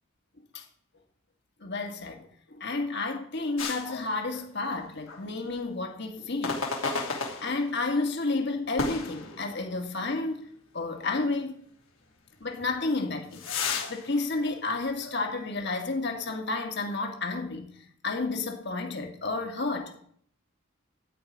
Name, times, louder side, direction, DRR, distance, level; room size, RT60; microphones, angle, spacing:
voice 1, 1.6-2.2 2.5-6.6 7.1-10.4 10.7-11.6 12.4-13.4 13.9-17.7 18.0-20.0, left 3 dB, 55° left, 2.0 m, -31 dB
sound 1, 3.6-4.8 5.1-5.3 6.4-7.9 8.8-9.9 10.4-10.5 11.2-11.3 12.6-15.3 15.6-15.8, left 4 dB, 80° left, 2.8 m, -34 dB
13.5 x 5.0 x 9.1 m
head